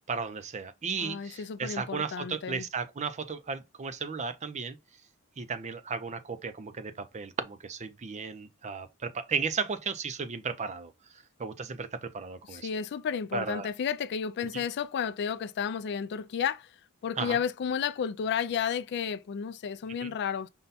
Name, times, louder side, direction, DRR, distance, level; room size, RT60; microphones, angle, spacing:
voice 1, 0.1-4.8 5.4-10.9 11.4-12.7 13.3-13.7 14.5-14.6 17.2-17.4 20.0-20.1, right 5 dB, 30° right, 0.5 m, -35 dB
voice 2, 1.0-2.7 12.5-16.7 17.0-20.5, left 7 dB, 50° left, 0.3 m, -32 dB
5.4 x 2.2 x 4.0 m
head